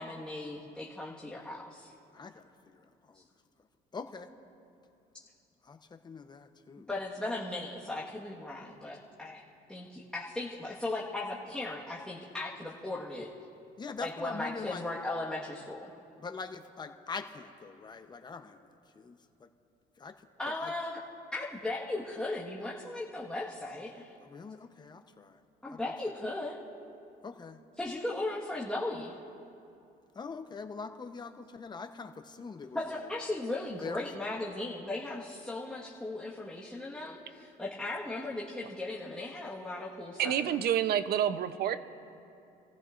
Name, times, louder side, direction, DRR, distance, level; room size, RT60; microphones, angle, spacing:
voice 1, 0.0-1.9 6.9-9.4 9.7-13.3 14.0-15.9 20.4-21.0 21.3-24.1 25.6-26.6 27.8-29.2 32.7-40.3, left 2 dB, 5° left, -6 dB, 1.5 m, -37 dB
voice 2, 2.1-2.4 2.7-2.9 3.9-4.3 5.7-5.8 6.0-6.9 13.8-14.8 16.2-18.6 19.0-19.5 20.0-20.1 20.5-20.7 24.2-25.4 25.7-25.8 27.2-27.6 30.2-32.8 33.8-34.0, left 5 dB, 25° left, 7 dB, 0.8 m, -43 dB
voice 3, 40.2-41.8, right 10 dB, 65° right, 12 dB, 0.7 m, -28 dB
29.5 x 15.0 x 2.6 m, 2.6 s
cardioid pair, 110°, 17 cm